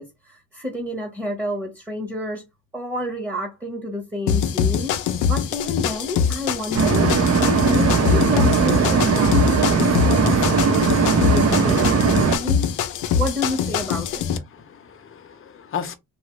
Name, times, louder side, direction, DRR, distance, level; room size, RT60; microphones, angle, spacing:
voice 1, 0.0-2.4 2.7-5.0 5.3-7.1 7.4-9.4 9.7-10.9 11.2-12.7 13.2-14.3, left 1 dB, 10° right, 1.0 m, -29 dB
sound 1, 4.3-14.4, left 8 dB, 80° left, 0.6 m, -24 dB
sound 2, 6.7-12.4, right 4 dB, 55° right, 0.8 m, -18 dB
voice 2, 14.5-16.0, left 7 dB, 45° left, 0.7 m, -35 dB
2.9 x 2.4 x 3.0 m
cardioid pair, 90°, 30 cm